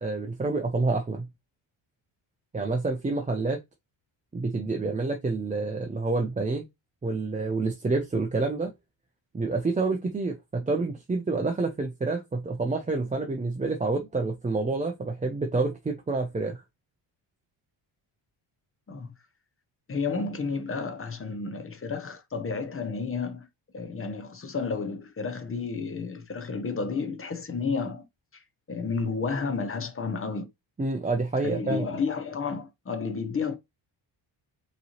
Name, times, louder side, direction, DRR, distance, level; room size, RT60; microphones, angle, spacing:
voice 1, 0.0-1.3 2.5-3.6 4.3-6.7 7.0-8.7 9.3-16.6 30.8-31.9, right 3 dB, 15° right, 0.6 m, -28 dB
voice 2, 19.9-23.5 23.7-28.1 28.3-28.4 28.7-30.5 31.4-33.6, left 4 dB, 25° left, 0.7 m, -31 dB
5.3 x 3.2 x 2.8 m
cardioid pair, 120°, 50 cm